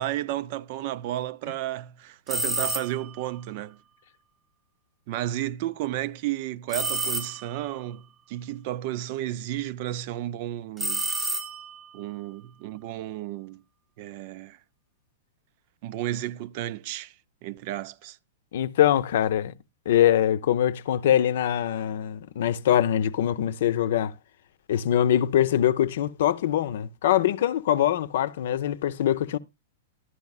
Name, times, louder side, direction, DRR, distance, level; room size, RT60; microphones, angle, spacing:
voice 1, 0.0-3.8 5.1-11.1 11.9-13.6 14.0-14.6 15.8-17.1 17.4-18.2, right 13 dB, 40° right, 0.5 m, -32 dB
sound 1, 2.3-3.2 6.7-7.7 10.8-11.9, right 2 dB, 10° right, 0.8 m, -30 dB
voice 2, 18.5-19.5 19.9-24.1 24.7-29.4, left 11 dB, 60° left, 0.7 m, -23 dB
12.5 x 11.0 x 2.4 m
supercardioid pair, 165°, 0 cm